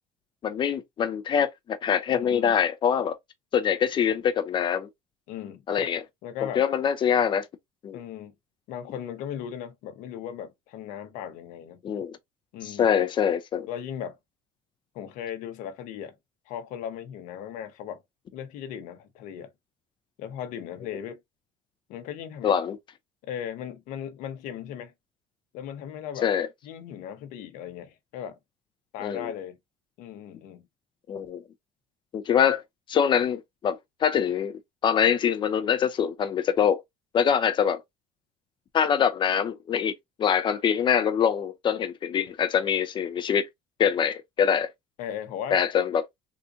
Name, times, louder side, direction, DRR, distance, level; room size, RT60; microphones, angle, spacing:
voice 1, 0.4-3.2 3.5-4.9 5.7-6.1 6.6-7.5 7.8-8.0 11.8-12.2 12.6-13.7 22.4-22.8 26.2-26.5 29.0-29.3 31.1-31.4 32.1-32.6 32.9-36.8 37.1-37.8 38.7-39.9 40.2-43.5 43.8-44.7 45.5-46.0, left 8 dB, 35° left, 0.5 m, -24 dB
voice 2, 2.1-2.6 5.3-5.6 6.2-6.6 7.9-8.3 8.7-11.8 12.5-12.9 13.7-14.2 14.9-16.2 16.5-18.0 18.3-19.5 20.2-21.2 21.9-22.6 23.2-24.9 25.5-26.3 26.6-28.4 28.9-29.6 30.0-30.7 45.0-45.6, left 9 dB, 75° left, 0.9 m, -37 dB
3.7 x 2.6 x 2.5 m
cardioid pair, 135°, 13 cm